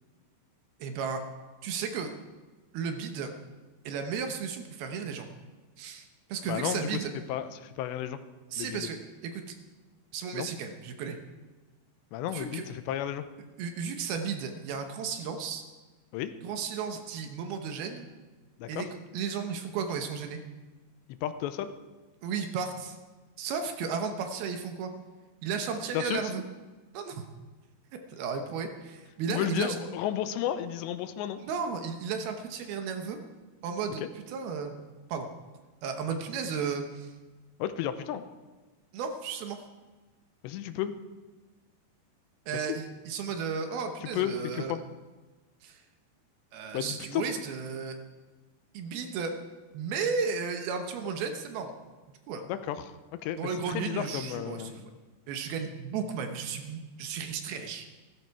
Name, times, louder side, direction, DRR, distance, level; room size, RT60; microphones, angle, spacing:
voice 1, 0.8-1.2 1.6-2.1 2.7-3.3 3.9-5.3 5.8-7.1 8.5-9.5 10.1-11.2 12.3-12.6 13.6-15.6 16.4-18.0 18.7-18.9 19.1-20.4 22.2-23.0 23.4-24.9 25.4-26.4 26.9-27.3 28.1-29.8 31.4-33.2 33.6-34.7 35.1-35.3 35.8-37.1 38.9-39.6 42.5-44.8 45.6-45.8 46.5-48.0 48.7-49.3 49.7-51.7 52.1-52.4 53.4-54.7 55.3-57.9, right 6 dB, 70° right, 6 dB, 2.7 m, -34 dB
voice 2, 6.4-6.9 7.3-8.2 8.6-8.9 10.3-10.5 12.1-13.2 16.1-16.3 18.6-18.8 21.2-21.7 25.9-26.2 29.3-31.4 37.6-38.2 40.4-40.9 42.5-42.7 44.1-44.8 46.7-47.2 52.4-52.9 53.2-55.0, left 11 dB, 85° left, 11 dB, 3.0 m, -33 dB
15.5 x 14.0 x 4.7 m, 1.3 s
omnidirectional pair, 5.0 m